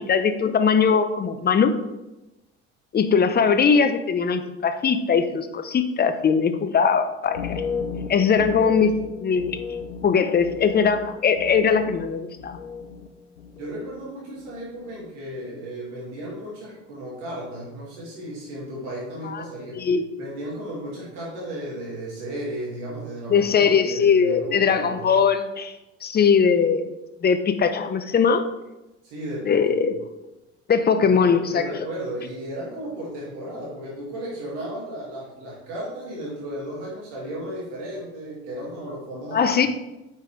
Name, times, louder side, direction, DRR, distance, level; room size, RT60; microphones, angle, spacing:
voice 1, 0.0-1.7 2.9-7.6 8.1-9.6 10.0-12.6 19.2-19.4 19.8-20.0 23.3-25.7 26.0-26.9 27.2-28.4 29.5-29.9 30.7-31.6 39.3-39.7, left 6 dB, 30° left, 9 dB, 0.8 m, -20 dB
sound 1, 7.2-13.1 13.4-14.1 14.4-14.8, left 5 dB, 90° left, 0.7 m, -34 dB
voice 2, 13.6-19.8 20.2-25.1 29.0-29.9 31.0-31.2 31.5-39.7, right 1 dB, 70° right, -5 dB, 2.2 m, -34 dB
8.9 x 5.6 x 3.3 m, 0.99 s
hypercardioid pair, 60°, 35 cm